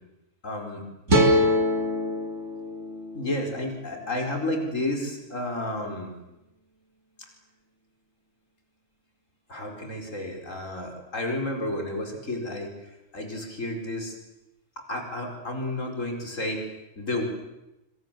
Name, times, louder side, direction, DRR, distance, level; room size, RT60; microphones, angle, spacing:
voice 1, 0.4-0.8 3.1-6.1 9.5-14.1 14.8-16.7 17.0-17.2, left 1 dB, 75° left, 3 dB, 5.3 m, -31 dB
sound 1, 1.1-4.3, equal, 70° right, 3.3 m, -25 dB
26.0 x 25.5 x 7.6 m, 0.96 s
omnidirectional pair, 1.3 m